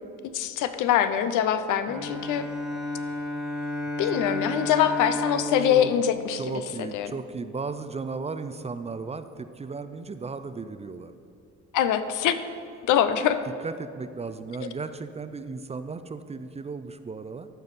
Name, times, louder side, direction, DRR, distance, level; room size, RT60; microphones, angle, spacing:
voice 1, 0.3-2.5 4.0-7.1 11.7-12.4 12.9-13.4, left 9 dB, 85° left, 11 dB, 0.6 m, -24 dB
Bowed string instrument, 1.9-7.1, left 1 dB, ahead, 1.4 m, -32 dB
voice 2, 6.3-11.1 13.6-17.5, right 4 dB, 20° right, 11 dB, 0.4 m, -35 dB
13.5 x 5.2 x 4.1 m, 2.5 s
cardioid pair, 90°, 30 cm